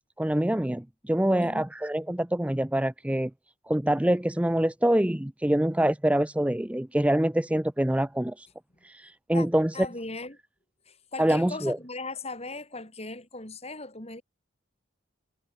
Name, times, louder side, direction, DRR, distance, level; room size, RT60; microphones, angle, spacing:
voice 1, 0.2-3.3 3.7-8.5 8.8-9.8 11.2-11.8, right 1 dB, 5° right, 0.5 m, -25 dB
voice 2, 9.7-10.4 10.9-14.2, left 3 dB, 30° left, 4.2 m, -38 dB
head